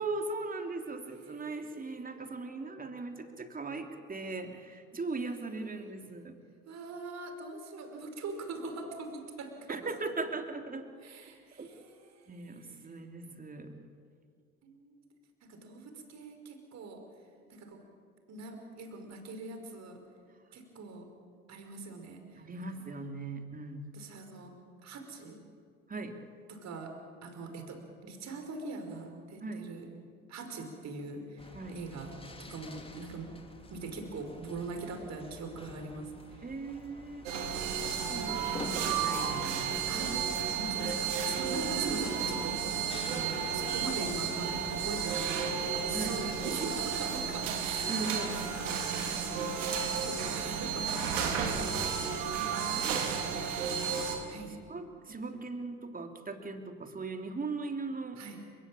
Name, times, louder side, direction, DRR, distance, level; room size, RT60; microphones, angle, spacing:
voice 1, 0.0-6.4 9.7-10.9 11.6-11.7 12.3-13.8 22.4-23.9 25.9-26.2 29.4-29.7 31.5-31.8 36.4-37.3 38.1-40.0 40.8-41.0 45.9-46.2 47.9-48.3 51.5-54.1 54.7-58.2, right 3 dB, 20° right, 5 dB, 3.2 m, -39 dB
voice 2, 1.1-2.0 6.7-9.9 11.0-12.7 14.6-15.0 15.4-17.1 17.5-17.8 18.3-20.0 20.5-21.1 21.5-23.0 23.9-24.5 24.8-25.4 26.5-29.9 30.3-33.4 33.7-36.5 39.9-42.6 43.1-49.5 50.0-51.1 51.4-51.7 54.3-54.6 58.2-58.4, right 3 dB, 45° right, 5 dB, 5.2 m, -42 dB
sound 1, 31.4-46.8, left 2 dB, 15° left, 3.8 m, -49 dB
sound 2, 37.3-54.2, right 6 dB, 70° right, 3.6 m, -33 dB
30.0 x 17.5 x 9.0 m, 2.1 s
figure-of-eight pair, 60°, 38 cm